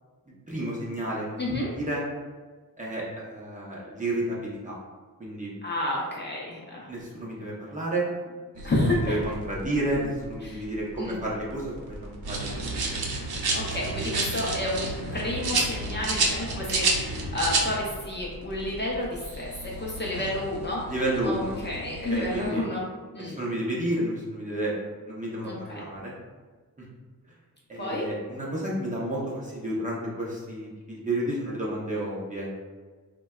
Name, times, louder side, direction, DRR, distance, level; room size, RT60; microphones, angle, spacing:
voice 1, 0.5-1.4 1.7-2.0 2.8-4.8 5.2-5.5 6.9-8.1 8.9-12.7 20.9-21.6 22.1-22.6 23.2-24.7 25.0-26.1 27.7-32.5, right 1 dB, 20° right, -5 dB, 0.7 m, -31 dB
voice 2, 1.4-1.7 5.6-6.9 8.6-9.1 10.4-10.7 11.0-11.2 13.5-14.8 15.1-19.5 19.8-20.8 21.2-22.8 23.1-23.4 25.4-25.8 27.7-28.1, left 1 dB, 30° left, -4 dB, 0.5 m, -30 dB
sound 1, 8.5-22.5, left 1 dB, 55° right, 0.8 m, -43 dB
sound 2, 12.2-17.8, right 3 dB, 85° right, 0.6 m, -28 dB
3.8 x 2.2 x 2.3 m, 1.4 s
wide cardioid pair, 120°, 36 cm